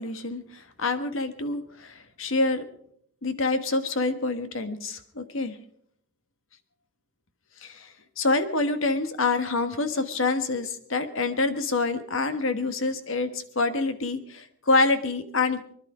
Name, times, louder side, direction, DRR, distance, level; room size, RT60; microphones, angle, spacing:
voice 1, 0.0-2.7 3.2-5.6 7.6-15.6, left 3 dB, 70° left, 10 dB, 1.4 m, -27 dB
24.5 x 11.5 x 4.9 m, 0.66 s
head